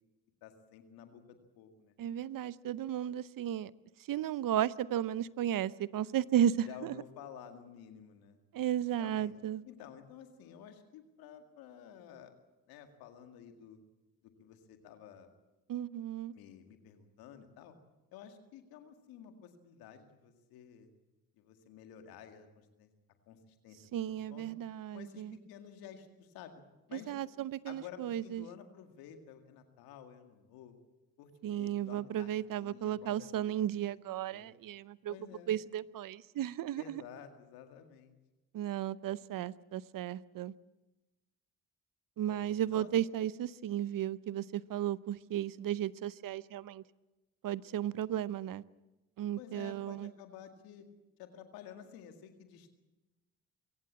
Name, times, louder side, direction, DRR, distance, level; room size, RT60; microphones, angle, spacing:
voice 1, 0.4-1.9 6.7-8.4 9.0-9.3 9.7-12.3 12.7-13.8 14.2-15.3 16.3-17.7 18.1-20.9 21.4-22.9 23.3-23.8 24.0-24.5 24.9-26.6 26.9-27.1 27.7-30.8 31.2-33.6 34.3-34.6 35.1-35.5 36.8-38.2 42.3-42.5 42.7-42.9 49.4-50.9 51.2-52.7, left 8 dB, 90° left, 6 dB, 2.1 m, -52 dB
voice 2, 2.0-3.7 4.1-6.9 8.5-9.6 15.7-16.3 23.9-25.4 26.9-28.4 31.4-35.2 35.5-37.0 38.5-40.5 42.2-46.8 47.4-48.6 49.2-50.1, right 11 dB, 65° right, 19 dB, 0.8 m, -34 dB
22.5 x 16.5 x 8.6 m, 1.1 s
supercardioid pair, 50°, 35 cm